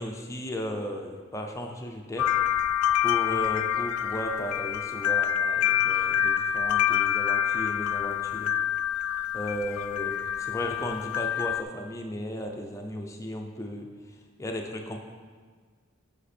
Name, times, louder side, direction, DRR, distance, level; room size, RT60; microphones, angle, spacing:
voice 1, 0.0-2.3 3.0-8.5 9.3-13.9 14.4-15.0, equal, 15° left, 2 dB, 0.6 m, -35 dB
sound 1, 2.2-11.6, left 10 dB, 90° left, 0.3 m, -27 dB
8.1 x 5.2 x 4.3 m, 1.5 s
head